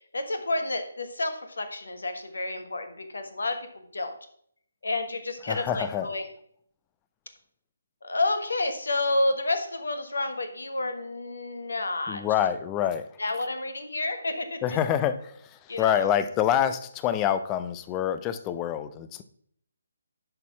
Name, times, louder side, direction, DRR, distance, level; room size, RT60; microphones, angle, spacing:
voice 1, 0.0-4.1 4.8-6.3 8.0-12.2 13.2-14.8 15.7-16.1, left 2 dB, 65° left, 8 dB, 1.3 m, -30 dB
voice 2, 5.5-6.1 12.1-13.1 14.6-19.2, left 10 dB, 15° left, 12 dB, 0.5 m, -26 dB
11.0 x 4.2 x 5.7 m, 0.66 s
figure-of-eight pair, 145°, 0 cm